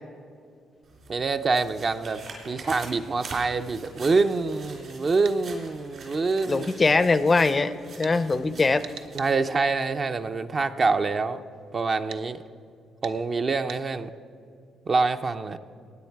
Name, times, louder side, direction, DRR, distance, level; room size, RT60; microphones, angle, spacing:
sound 1, 0.8-9.6 10.0-10.1, right 3 dB, 60° right, 3.5 m, -45 dB
voice 1, 1.1-6.8 9.1-11.4 11.7-12.4 13.0-14.1 14.9-15.6, right 4 dB, 40° right, 9 dB, 0.5 m, -26 dB
sound 2, 5.2-5.4 8.0-8.2 8.8-9.3 12.1-12.2 13.0-13.2 13.7-13.8, right 8 dB, 90° right, 0.6 m, -41 dB
voice 2, 6.5-8.8, left 3 dB, 30° left, 14 dB, 0.5 m, -22 dB
16.5 x 9.4 x 4.6 m, 2.4 s
cardioid pair, 90°, 0 cm